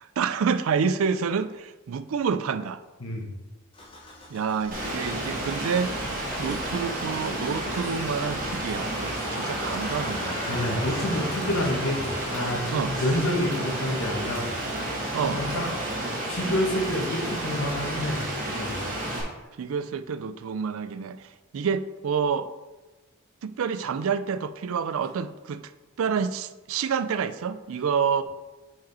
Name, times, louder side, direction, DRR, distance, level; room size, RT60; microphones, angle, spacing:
voice 1, 0.0-2.8 4.3-6.0 6.4-10.6 12.7-12.9 15.1-15.4 19.6-22.5 23.4-25.6 26.0-28.2, right 6 dB, 75° right, 13 dB, 0.4 m, -28 dB
Motor vehicle (road) / Engine starting, 3.7-12.3, left 1 dB, 25° left, 1.1 m, -41 dB
Rain, 4.7-19.2, right 1 dB, 40° right, 1.7 m, -31 dB
voice 2, 10.5-14.5 15.2-15.7 16.3-18.2 18.6-18.8, left 1 dB, 75° left, 0 dB, 1.5 m, -28 dB
6.0 x 5.0 x 4.2 m, 1.1 s
head